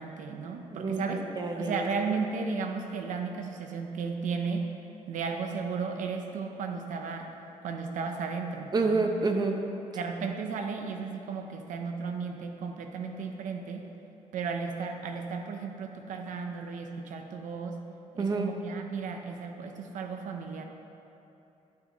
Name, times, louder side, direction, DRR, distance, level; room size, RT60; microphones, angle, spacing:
voice 1, 0.0-1.2 1.6-4.7 5.1-7.3 7.6-9.0 9.9-13.9 14.3-17.8 18.1-20.7, right 5 dB, 85° right, 4 dB, 0.9 m, -34 dB
voice 2, 0.7-1.1 1.4-1.9 8.7-9.6 18.2-18.5, right 3 dB, 30° right, 3 dB, 0.8 m, -28 dB
11.5 x 8.6 x 3.1 m, 2.9 s
wide cardioid pair, 150°, 13 cm